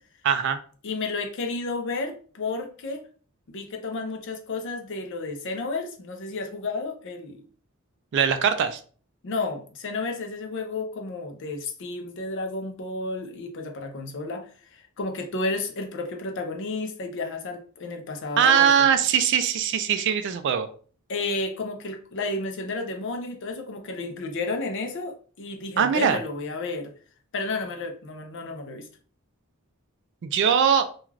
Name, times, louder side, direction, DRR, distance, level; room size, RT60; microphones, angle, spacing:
voice 1, 0.2-0.6 8.1-8.8 18.4-20.7 25.8-26.2 30.2-30.9, right 7 dB, 55° right, 9 dB, 0.3 m, -21 dB
voice 2, 0.8-3.0 3.5-7.4 9.2-18.7 21.1-26.9 27.3-28.9, left 3 dB, 60° left, 5 dB, 0.5 m, -32 dB
2.4 x 2.3 x 3.2 m, 0.42 s
head